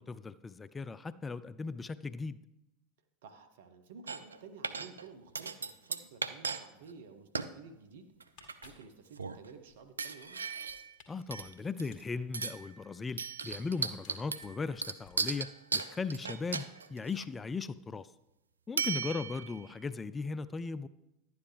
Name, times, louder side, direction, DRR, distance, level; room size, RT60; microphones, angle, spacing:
voice 1, 0.0-2.4 11.1-18.1 18.7-20.9, left 4 dB, 20° left, 16 dB, 0.3 m, -38 dB
voice 2, 3.2-8.1 8.6-10.4 18.8-19.1, right 5 dB, 70° right, 8 dB, 0.9 m, -53 dB
sound 1, 4.1-4.4 4.6-5.1 5.3-6.6 6.9-7.0 7.3-7.5 8.2-8.8 9.2-9.5 10.0-10.9 11.3-12.0 12.3-12.7 13.2-17.2 18.8-19.6, right 5 dB, 90° right, 0.4 m, -36 dB
sound 2, 8.1-9.8 10.2-11.1 11.4-13.7 14.0-15.8 16.0-16.2, left 7 dB, 50° left, 1.6 m, -61 dB
11.5 x 9.5 x 3.3 m, 0.93 s
hypercardioid pair, 85°, 0 cm